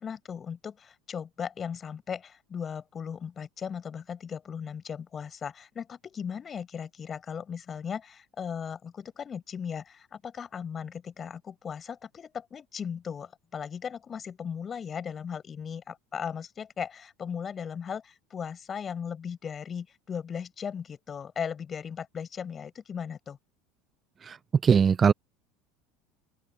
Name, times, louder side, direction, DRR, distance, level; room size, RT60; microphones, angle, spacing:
voice 1, 0.0-23.4, left 7 dB, 30° left, 6.2 m, -37 dB
voice 2, 24.6-25.1, right 6 dB, 30° right, 0.8 m, -20 dB
open air
figure-of-eight pair, 70°, 0 cm